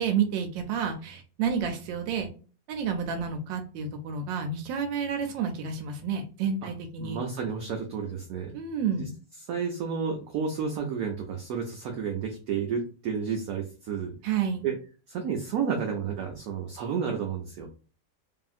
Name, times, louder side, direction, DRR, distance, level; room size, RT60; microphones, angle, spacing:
voice 1, 0.0-2.3 2.7-7.2 8.5-9.1 14.2-14.7, right 6 dB, 85° right, 5 dB, 1.3 m, -30 dB
voice 2, 7.0-8.6 9.0-9.1 9.5-14.1 14.6-14.7 15.1-17.7, right 6 dB, 70° right, 3 dB, 0.9 m, -31 dB
2.7 x 2.7 x 2.4 m, 0.36 s
omnidirectional pair, 1.9 m